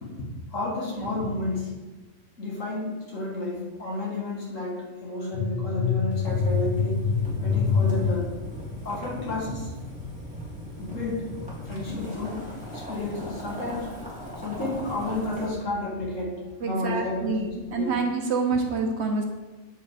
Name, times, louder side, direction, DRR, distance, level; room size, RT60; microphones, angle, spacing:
voice 1, 0.5-1.7 2.4-7.1 7.4-8.3 8.8-9.7 10.8-11.3 11.6-13.9 14.4-18.0, left 2 dB, 65° left, -3 dB, 2.3 m, -31 dB
sound 1, 5.3-8.2, left 5 dB, 85° left, 1.3 m, -25 dB
Boiling, 6.1-15.4, left 1 dB, 5° right, 2.2 m, -38 dB
voice 2, 16.6-19.3, right 4 dB, 55° right, 3 dB, 1.0 m, -27 dB
7.8 x 5.1 x 4.9 m, 1.2 s
omnidirectional pair, 1.4 m